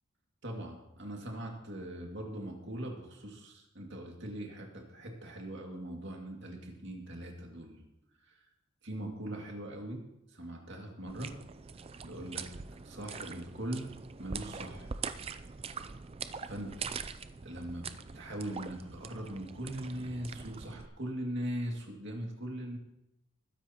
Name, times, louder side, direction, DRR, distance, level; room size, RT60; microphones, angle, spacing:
voice 1, 0.4-7.8 8.2-8.4 8.8-10.0 10.3-11.3 12.0-12.5 12.7-13.9 14.2-14.9 16.5-16.9 17.4-17.8 18.1-22.8, right 1 dB, 55° right, 1 dB, 2.3 m, -40 dB
sound 1, 11.1-20.9, right 5 dB, 25° right, 0.4 m, -43 dB
20.0 x 10.0 x 3.0 m, 0.87 s
head